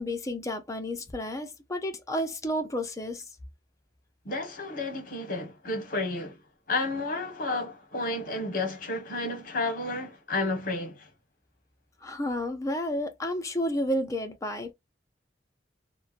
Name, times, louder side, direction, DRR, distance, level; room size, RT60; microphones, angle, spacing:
voice 1, 0.0-3.3 12.0-14.7, equal, 15° left, 0.5 m, -31 dB
voice 2, 4.2-6.4 6.7-11.1, left 2 dB, 50° left, 1.0 m, -31 dB
3.0 x 2.1 x 2.4 m
head